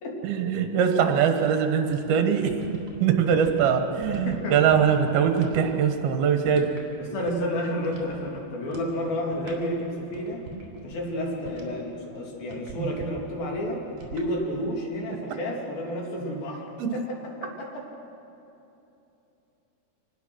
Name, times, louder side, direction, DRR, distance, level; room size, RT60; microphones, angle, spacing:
voice 1, 0.2-2.5 3.0-6.7 12.8-12.9 16.8-16.9, right 7 dB, 75° right, 5 dB, 3.2 m, -22 dB
sound 1, 1.9-5.6 5.9-7.6 7.8-8.2 8.6-9.0 9.2-11.9 12.4-13.1 13.9-14.3, right 3 dB, 45° right, 4.3 m, -43 dB
voice 2, 4.1-4.6 7.0-10.4 10.8-13.8 14.1-16.6 16.9-17.8, equal, 70° left, -1 dB, 4.6 m, -31 dB
26.0 x 19.5 x 6.3 m, 2.9 s
omnidirectional pair, 4.5 m